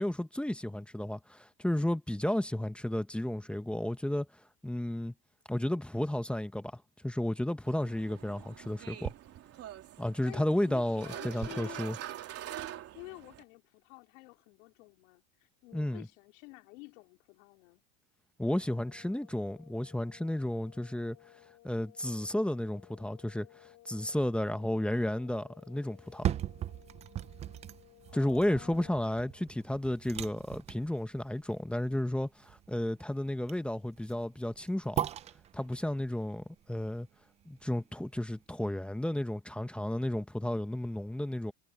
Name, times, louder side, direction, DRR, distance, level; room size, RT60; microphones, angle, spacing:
voice 1, 0.0-4.3 4.6-5.1 5.5-9.1 10.0-12.0 15.7-16.1 18.4-21.2 21.6-23.5 23.8-26.3 28.1-35.1 35.5-37.1 37.5-41.5, left 1 dB, 5° left, 1.1 m, -32 dB
sound 1, 7.7-13.4, right 12 dB, 35° right, 3.0 m, -44 dB
voice 2, 10.2-11.8 12.9-17.8 28.1-28.9, left 26 dB, 70° left, 4.4 m, -50 dB
sound 2, 18.4-29.5, left 17 dB, 50° left, 4.8 m, -59 dB
sound 3, 25.9-38.0 38.4-38.5, right 11 dB, 20° right, 0.3 m, -40 dB
supercardioid pair, 135°, 40 cm